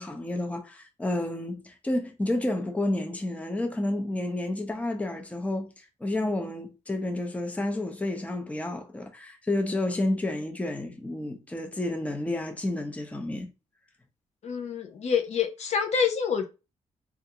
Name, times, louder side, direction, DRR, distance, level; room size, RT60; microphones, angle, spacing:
voice 1, 0.0-13.5, left 1 dB, 10° left, 0.6 m, -30 dB
voice 2, 14.4-16.4, left 6 dB, 65° left, 0.6 m, -27 dB
3.5 x 2.4 x 2.8 m
cardioid pair, 110°, 12 cm